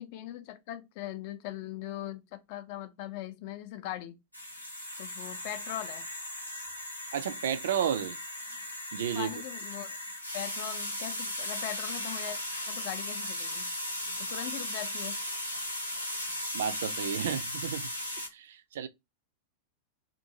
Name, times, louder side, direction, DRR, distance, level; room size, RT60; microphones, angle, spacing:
voice 1, 0.0-4.1 5.0-6.1 9.1-10.0 10.3-12.4 12.7-13.7 14.3-15.2, left 12 dB, 45° left, 0.4 m, -40 dB
sound 1, 4.3-18.3, left 1 dB, 90° left, 0.8 m, -37 dB
voice 2, 7.1-8.2 8.9-9.3 16.5-17.9 18.3-18.9, right 9 dB, 60° right, 0.3 m, -32 dB
2.6 x 2.4 x 2.7 m
figure-of-eight pair, 90°, 0 cm